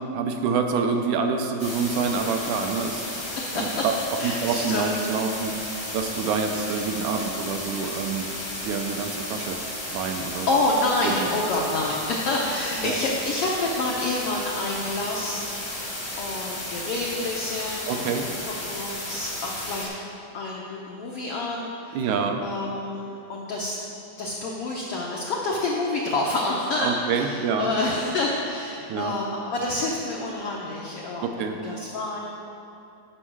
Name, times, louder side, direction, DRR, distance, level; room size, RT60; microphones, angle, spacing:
voice 1, 0.1-3.1 3.5-3.9 4.2-5.5 5.9-8.3 8.6-9.6 9.9-10.5 11.0-11.3 12.8-13.0 17.9-18.2 21.9-22.4 26.8-27.7 28.9-29.2 31.2-31.6, right 5 dB, 80° right, 4 dB, 2.0 m, -27 dB
sound 1, 1.6-19.9, left 1 dB, 30° left, 0.5 m, -34 dB
voice 2, 3.3-3.8 4.2-4.9 10.5-19.9 20.3-22.1 22.4-23.8 24.2-32.2, left 2 dB, 80° left, -3 dB, 1.3 m, -28 dB
10.0 x 5.4 x 6.1 m, 2.7 s
omnidirectional pair, 3.6 m